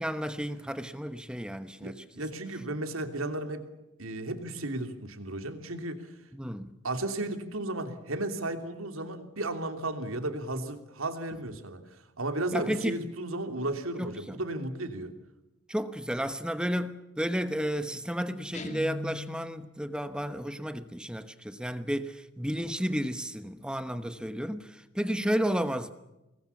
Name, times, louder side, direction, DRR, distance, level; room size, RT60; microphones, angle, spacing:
voice 1, 0.0-2.0 6.3-6.7 12.5-13.0 14.0-14.4 15.7-25.9, equal, 5° right, 1.0 m, -32 dB
voice 2, 1.8-3.6 4.0-6.1 6.8-11.8 12.2-15.1, right 2 dB, 85° right, 3.1 m, -34 dB
Guitar, 18.5-19.7, left 1 dB, 35° left, 2.3 m, -38 dB
26.0 x 21.0 x 7.2 m
head